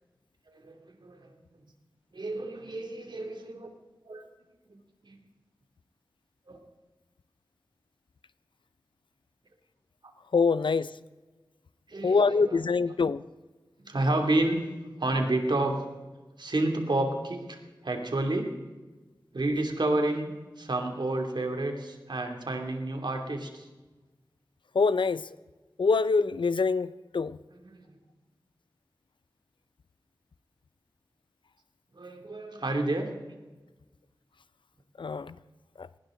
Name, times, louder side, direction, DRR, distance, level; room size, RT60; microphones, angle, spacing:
voice 1, 0.5-1.3 2.1-3.7 4.1-4.2 5.0-5.2 6.5-6.6 11.9-12.6 13.8-14.6 15.0-15.8 16.4-17.6 17.8-18.5 19.3-23.7 27.5-27.8 31.9-33.1, right 2 dB, 65° right, 4 dB, 2.8 m, -30 dB
voice 2, 10.3-10.9 12.0-13.2 24.7-25.3 25.8-27.4 35.0-35.4 35.8-35.9, left 4 dB, 80° left, 16 dB, 0.6 m, -25 dB
19.5 x 18.5 x 3.9 m, 1.2 s
wide cardioid pair, 80°, 8 cm